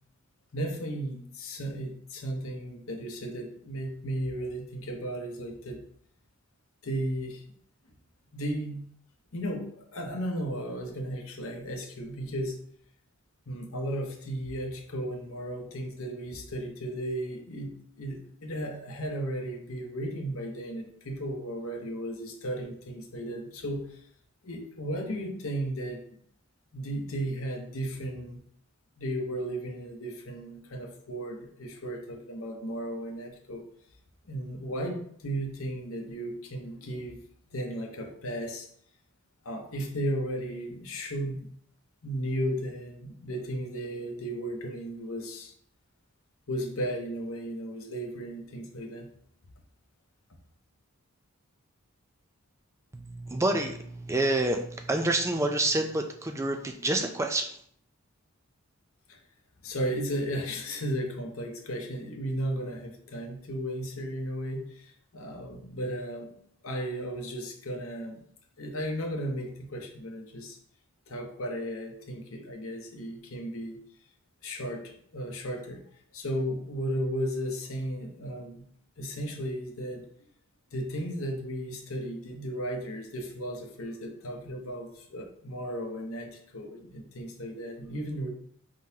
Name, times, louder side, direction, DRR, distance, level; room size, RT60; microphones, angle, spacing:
voice 1, 0.5-5.8 6.8-7.4 8.3-8.8 9.3-12.6 13.5-24.0 24.4-26.0 26.7-28.4 29.0-33.6 34.3-37.2 37.5-38.7 39.4-41.5 42.0-45.5 46.5-49.1 59.1-59.2 59.6-66.3 66.6-68.2 68.6-70.6 71.1-73.8 74.4-75.8 76.1-78.6 79.0-80.0 80.7-88.3, right 1 dB, 70° left, 2 dB, 0.8 m, -35 dB
voice 2, 52.9-57.6, right 2 dB, 15° right, 5 dB, 0.3 m, -28 dB
4.7 x 3.7 x 2.7 m, 0.64 s
head